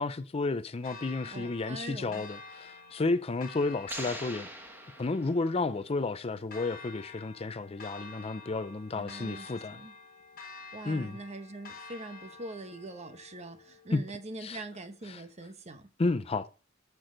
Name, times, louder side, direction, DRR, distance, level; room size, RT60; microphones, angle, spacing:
voice 1, 0.0-4.5 5.0-9.8 10.8-11.2 13.9-14.0 14.4-14.6 15.1-15.2 16.0-16.5, left 3 dB, 30° left, 0.5 m, -32 dB
Church bell, 0.8-14.8, left 3 dB, 45° left, 1.3 m, -49 dB
voice 2, 1.3-2.2 8.9-9.5 9.7-10.0 10.7-15.9, right 2 dB, 35° right, 1.0 m, -43 dB
sound 1, 3.9-5.8, right 1 dB, 10° right, 1.5 m, -42 dB
13.0 x 6.1 x 3.8 m
head